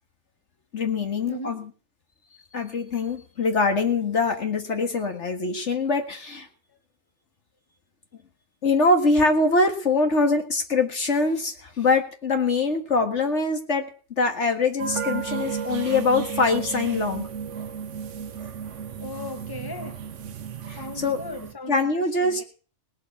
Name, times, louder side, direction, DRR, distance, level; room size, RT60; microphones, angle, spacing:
voice 1, 0.7-1.7 2.5-6.5 8.6-13.9 14.2-17.3 20.7-21.2 21.7-22.4, left 3 dB, 60° left, 2.1 m, -23 dB
voice 2, 1.2-1.6 6.7-6.8 18.4-18.5 19.0-20.0 20.7-22.4, left 2 dB, 15° left, 1.7 m, -38 dB
sound 1, 14.8-21.5, right 7 dB, 65° right, 1.3 m, -33 dB
18.5 x 7.6 x 7.1 m
omnidirectional pair, 1.4 m